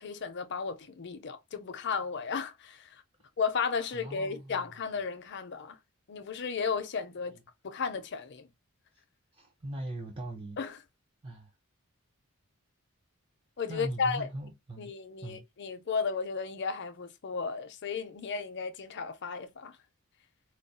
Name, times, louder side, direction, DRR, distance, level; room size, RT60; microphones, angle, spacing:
voice 1, 0.0-3.0 3.4-5.8 6.1-7.4 7.6-8.5 10.6-10.8 13.6-14.3 14.8-19.8, left 5 dB, 55° left, 0.6 m, -34 dB
voice 2, 3.9-4.7 9.3-10.6 11.2-11.5 13.7-14.9 15.2-15.4, right 1 dB, 25° right, 0.5 m, -40 dB
4.4 x 2.3 x 2.6 m
head